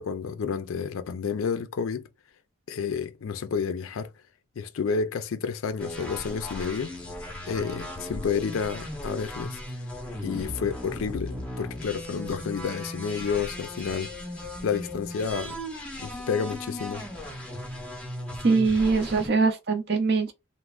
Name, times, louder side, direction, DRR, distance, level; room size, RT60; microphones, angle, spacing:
voice 1, 0.0-2.1 2.7-4.1 4.6-6.9 7.5-9.6 10.2-14.1 14.6-15.6 16.0-17.0, left 6 dB, 80° left, 0.4 m, -30 dB
sound 1, 5.8-19.3, left 1 dB, 5° left, 0.5 m, -37 dB
voice 2, 18.4-20.3, right 4 dB, 50° right, 0.5 m, -22 dB
3.1 x 2.0 x 2.3 m
head